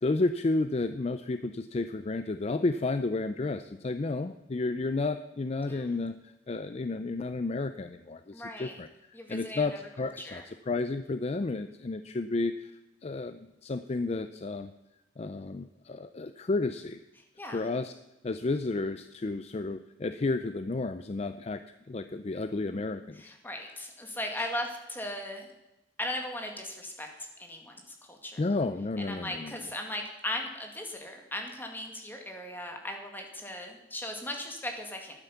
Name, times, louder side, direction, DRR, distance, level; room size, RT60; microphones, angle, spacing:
voice 1, 0.0-8.9 9.3-12.7 13.0-14.7 15.2-17.0 17.5-17.9 18.2-21.6 21.9-23.3 23.7-23.8 28.4-29.5, left 3 dB, 35° left, 10 dB, 0.4 m, -32 dB
voice 2, 8.3-8.8 9.1-9.8 10.2-10.5 17.4-17.7 23.2-25.5 26.0-27.1 27.4-27.8 28.1-28.4 29.0-35.1, left 1 dB, 10° left, 3 dB, 2.0 m, -38 dB
12.0 x 9.3 x 7.1 m, 0.95 s
head